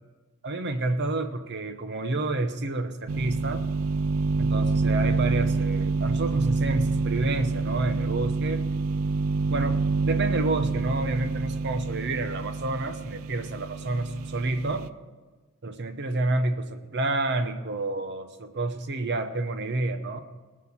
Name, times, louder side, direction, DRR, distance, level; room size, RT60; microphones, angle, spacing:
voice 1, 0.4-3.6 4.4-8.6 9.5-14.9 15.6-20.2, right 2 dB, 50° right, 9 dB, 0.8 m, -29 dB
sound 1, 3.1-14.9, right 4 dB, 65° right, 0.4 m, -27 dB
19.5 x 6.5 x 7.2 m, 1.3 s
head